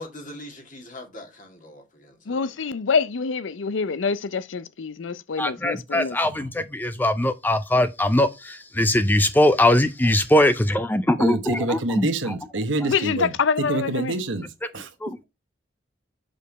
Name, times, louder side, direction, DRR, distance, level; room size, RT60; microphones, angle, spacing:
voice 1, 0.0-2.5, left 1 dB, 45° left, 2.2 m, -41 dB
voice 2, 2.3-6.2 12.9-14.1, left 5 dB, 80° left, 0.6 m, -26 dB
voice 3, 5.4-12.1 15.0-15.1, left 1 dB, 10° left, 0.4 m, -21 dB
voice 4, 11.2-14.9, right 2 dB, 80° right, 1.0 m, -27 dB
6.6 x 5.2 x 4.0 m
head